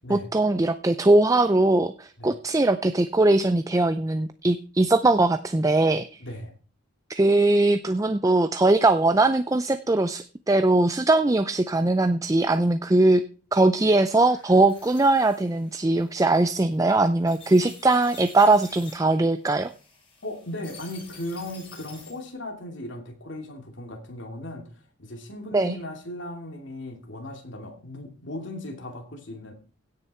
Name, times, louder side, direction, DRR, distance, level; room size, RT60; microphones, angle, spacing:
voice 1, 0.1-6.1 7.1-13.2 13.5-19.7 25.5-25.8, right 2 dB, 15° right, 10 dB, 0.4 m, -21 dB
voice 2, 6.2-6.5 20.2-29.5, left 1 dB, 65° left, 2 dB, 2.9 m, -37 dB
sound 1, 14.2-22.3, left 4 dB, 25° left, 6.0 m, -49 dB
16.5 x 6.7 x 4.4 m, 0.38 s
head